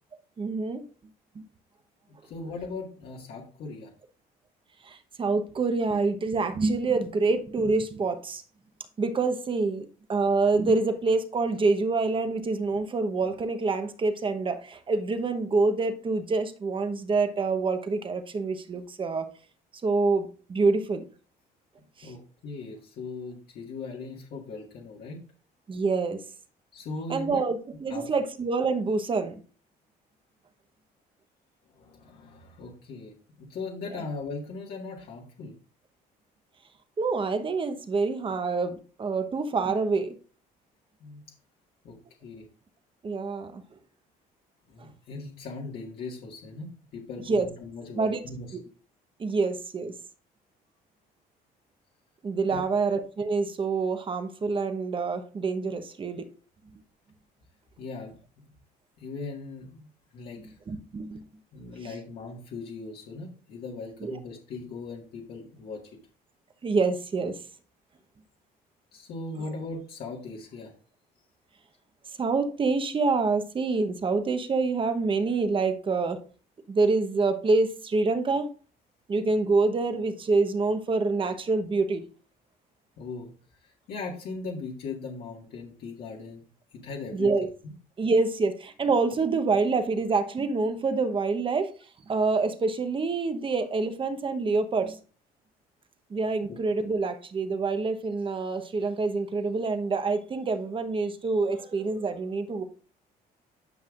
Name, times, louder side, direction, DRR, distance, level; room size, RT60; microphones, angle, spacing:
voice 1, 0.4-0.8 1.3-1.5 4.8-8.4 9.0-19.3 19.8-21.0 22.0-22.1 25.7-26.2 27.1-29.4 33.9-34.0 37.0-40.1 43.0-43.6 47.3-47.5 48.0-48.2 48.5-48.6 49.2-49.9 52.2-56.3 56.7-56.8 60.7-61.3 64.0-64.1 66.6-67.4 72.2-76.2 76.7-78.5 79.1-82.0 87.1-87.5 88.0-91.7 92.1-95.0 96.1-102.6, right 3 dB, 30° right, 1.0 m, -26 dB
voice 2, 2.1-3.9 22.0-25.2 26.7-27.4 27.9-28.1 31.6-35.5 41.0-41.2 41.8-41.9 42.2-42.5 44.7-48.5 52.5-52.6 57.8-58.2 59.0-60.6 61.5-65.8 68.9-70.7 83.0-86.4 86.7-87.7 96.5-96.6, left 3 dB, 65° left, 1.8 m, -39 dB
10.0 x 5.6 x 2.5 m
cardioid pair, 110°, 17 cm